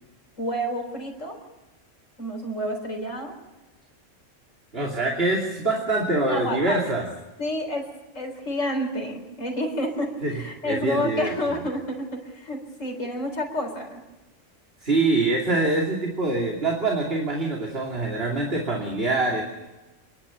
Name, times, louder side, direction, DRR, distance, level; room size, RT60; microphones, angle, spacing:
voice 1, 0.4-1.4 2.2-3.4 6.3-6.8 7.4-7.9 8.1-14.0, equal, 85° left, 2 dB, 4.5 m, -29 dB
voice 2, 4.7-7.1 10.2-10.3 10.6-11.3 14.8-19.4, right 2 dB, 50° right, -1 dB, 3.1 m, -24 dB
28.0 x 11.5 x 9.3 m, 1.1 s
omnidirectional pair, 1.3 m